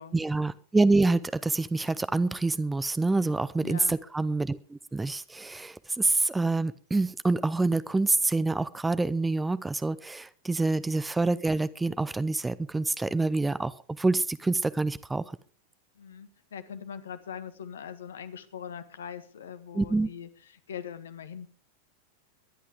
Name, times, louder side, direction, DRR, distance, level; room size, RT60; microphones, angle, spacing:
voice 1, 0.1-15.3 19.7-20.1, right 3 dB, 10° right, 16 dB, 0.7 m, -27 dB
voice 2, 3.6-4.0 10.6-10.8 15.9-21.5, left 8 dB, 65° left, 13 dB, 1.5 m, -42 dB
22.5 x 11.5 x 3.7 m, 0.37 s
figure-of-eight pair, 90°, 0 cm